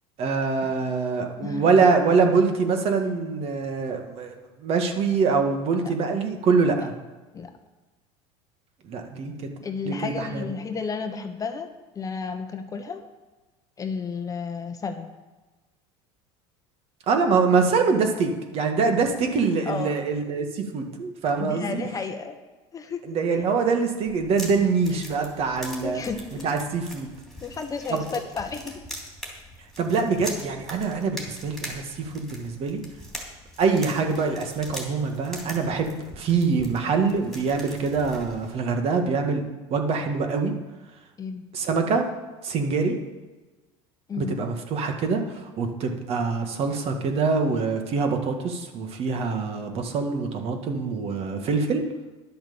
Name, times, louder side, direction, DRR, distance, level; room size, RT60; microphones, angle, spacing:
voice 1, 0.2-4.3 4.6-6.9 8.8-9.5 9.8-10.4 17.1-21.8 23.1-26.0 26.3-27.1 27.9-28.0 29.8-32.8 33.6-39.4 39.7-40.6 41.5-42.1 42.4-43.0 44.2-51.8, right 4 dB, 45° right, 4 dB, 1.9 m, -24 dB
voice 2, 9.6-11.7 11.9-13.1 13.8-15.1 19.7-20.0 21.4-22.4 22.7-23.4 25.0-25.1 25.8-26.5 27.4-28.8 41.2-41.4 44.1-44.4, left 5 dB, 25° left, 7 dB, 1.0 m, -32 dB
sound 1, 24.1-38.6, equal, ahead, 3.1 m, -42 dB
11.0 x 7.7 x 7.1 m, 1.2 s
supercardioid pair, 120°, 14 cm